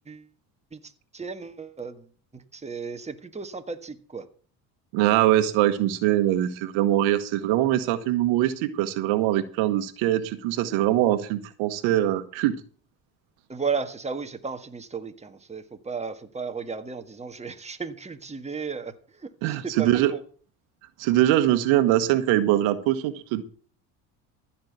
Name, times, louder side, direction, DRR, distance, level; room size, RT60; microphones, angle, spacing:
voice 1, 0.7-2.1 2.3-4.3 13.5-20.2, right 5 dB, 15° right, 7 dB, 1.6 m, -34 dB
voice 2, 4.9-12.6 19.4-20.1 21.0-23.4, right 13 dB, 75° right, 11 dB, 1.4 m, -22 dB
14.5 x 5.9 x 8.1 m, 0.43 s
supercardioid pair, 75°, 47 cm